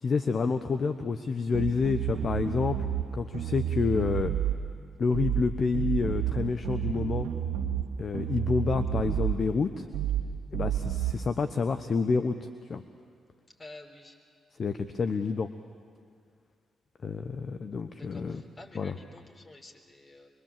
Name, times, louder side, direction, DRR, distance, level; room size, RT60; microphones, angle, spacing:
voice 1, 0.0-2.8 3.1-4.3 5.0-7.3 8.0-9.9 10.5-12.8 14.6-15.5 17.0-18.4 18.7-19.0, left 4 dB, 50° left, 9 dB, 0.9 m, -28 dB
sound 1, 1.5-3.1 3.3-4.6 5.1-5.5 5.7-7.9 8.1-9.4 9.9-10.3 10.5-11.1, right 10 dB, 75° right, 2.1 m, -30 dB
voice 2, 13.6-14.2 18.0-20.3, left 2 dB, 30° left, 2 dB, 4.0 m, -50 dB
25.0 x 22.5 x 7.5 m, 2.1 s
hypercardioid pair, 40°, 0 cm